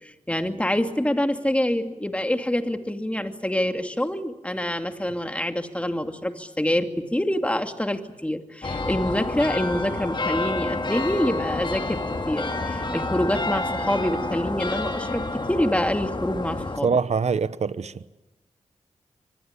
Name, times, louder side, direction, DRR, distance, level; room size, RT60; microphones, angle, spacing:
voice 1, 0.0-12.0 12.3-17.0, left 1 dB, 10° left, 6 dB, 2.5 m, -26 dB
sound 1, 8.6-16.8, left 2 dB, 35° left, 2.4 m, -29 dB
voice 2, 16.8-18.0, right 5 dB, 60° right, 16 dB, 0.9 m, -24 dB
24.5 x 19.5 x 9.9 m, 1.1 s
cardioid pair, 60°, 13 cm